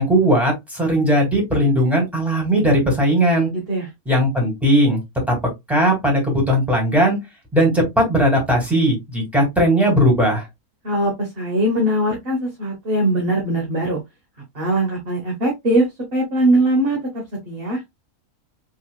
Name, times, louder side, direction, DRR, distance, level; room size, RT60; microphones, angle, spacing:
voice 1, 0.0-3.5 4.1-5.0 5.3-5.4 5.7-7.2 7.5-10.5, equal, ahead, -1 dB, 2.7 m, -18 dB
voice 2, 3.5-3.9 10.8-14.0 14.5-15.8 16.1-17.8, right 1 dB, 40° right, -1 dB, 1.7 m, -21 dB
5.0 x 4.1 x 2.4 m, 0.18 s
omnidirectional pair, 1.6 m